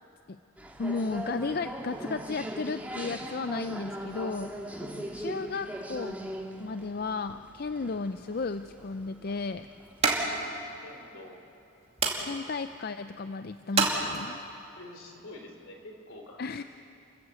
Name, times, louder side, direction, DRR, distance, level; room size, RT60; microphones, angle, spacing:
sound 1, 0.6-10.4, right 1 dB, 5° right, 1.7 m, -40 dB
voice 1, 0.8-6.2 6.6-9.7 12.2-14.4 16.4-16.6, left 4 dB, 45° left, 11 dB, 0.5 m, -34 dB
voice 2, 4.9-5.4 10.0-11.4 12.1-12.6 14.8-16.6, left 1 dB, 70° left, 3 dB, 3.4 m, -49 dB
sound 2, 8.3-14.6, right 3 dB, 30° right, 2.4 m, -33 dB
29.0 x 14.5 x 8.1 m, 2.9 s
head